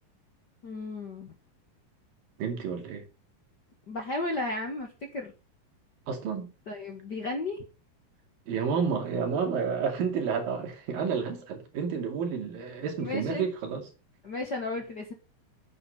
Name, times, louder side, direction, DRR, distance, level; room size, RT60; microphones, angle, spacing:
voice 1, 0.6-1.3 3.9-5.3 6.7-7.6 13.0-13.5 14.2-15.1, left 2 dB, 45° left, 1.3 m, -34 dB
voice 2, 2.4-3.0 6.1-6.5 8.5-13.9, right 6 dB, 75° right, 4.2 m, -30 dB
9.6 x 8.5 x 5.4 m
omnidirectional pair, 4.0 m